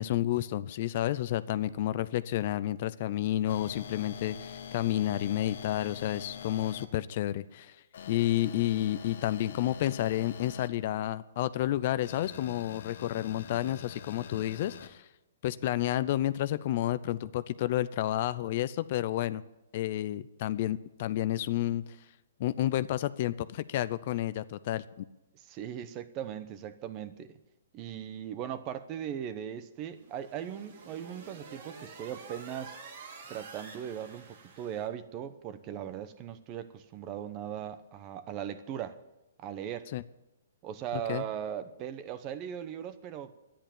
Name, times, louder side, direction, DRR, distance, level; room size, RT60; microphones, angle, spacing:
voice 1, 0.0-7.8 8.1-15.1 15.4-19.4 19.7-21.8 22.4-25.0 39.9-40.0 41.1-41.2, left 13 dB, 45° left, 0.5 m, -30 dB
sound 1, 3.5-6.9 7.9-10.7 12.0-14.9, left 7 dB, 60° left, 1.5 m, -45 dB
voice 2, 25.4-27.4 27.7-32.8 33.3-39.0 39.4-39.9 40.6-43.3, right 9 dB, 25° right, 0.8 m, -39 dB
sound 2, 29.9-34.9, right 4 dB, 50° right, 2.3 m, -49 dB
11.5 x 10.0 x 8.9 m
hypercardioid pair, 155°, 0 cm